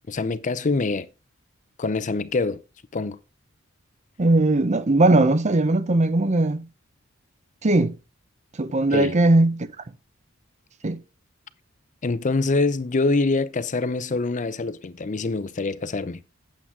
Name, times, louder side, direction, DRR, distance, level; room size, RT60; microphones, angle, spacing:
voice 1, 0.1-1.1 1.8-2.6 2.9-3.2 8.9-9.1 12.0-16.2, left 3 dB, 40° left, 0.5 m, -25 dB
voice 2, 4.2-6.7 7.6-8.0 8.6-9.7 10.8-11.0, right 2 dB, 35° right, 0.7 m, -19 dB
8.6 x 7.5 x 3.6 m
head